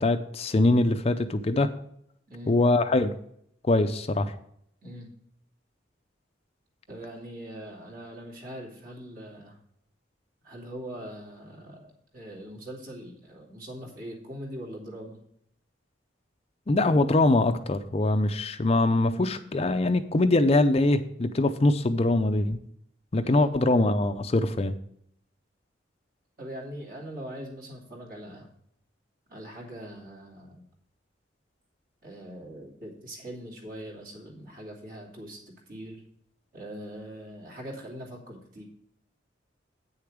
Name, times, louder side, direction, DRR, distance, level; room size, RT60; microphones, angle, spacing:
voice 1, 0.0-1.7 2.5-3.1 3.6-4.3 16.7-22.6 23.1-24.7, left 2 dB, 35° left, 9 dB, 0.5 m, -23 dB
voice 2, 6.9-9.6 10.4-15.2 23.2-23.5 26.4-28.5 29.3-30.6 32.0-35.4 35.7-36.0 36.5-38.6, equal, 50° right, -1 dB, 2.8 m, -42 dB
8.8 x 6.8 x 4.9 m, 0.70 s
head